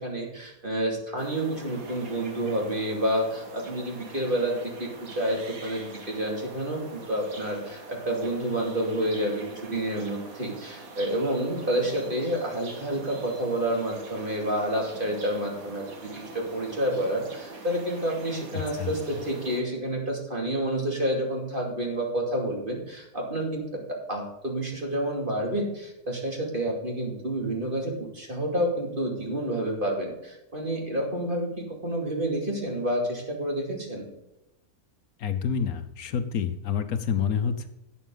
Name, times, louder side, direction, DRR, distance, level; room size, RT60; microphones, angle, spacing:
voice 1, 0.0-23.6 24.1-34.0, right 1 dB, 35° right, 0 dB, 2.8 m, -29 dB
sound 1, 1.2-19.6, right 3 dB, 65° right, 2.1 m, -44 dB
voice 2, 35.2-37.7, left 7 dB, 70° left, 9 dB, 1.3 m, -28 dB
12.0 x 8.2 x 3.9 m, 0.91 s
omnidirectional pair, 1.6 m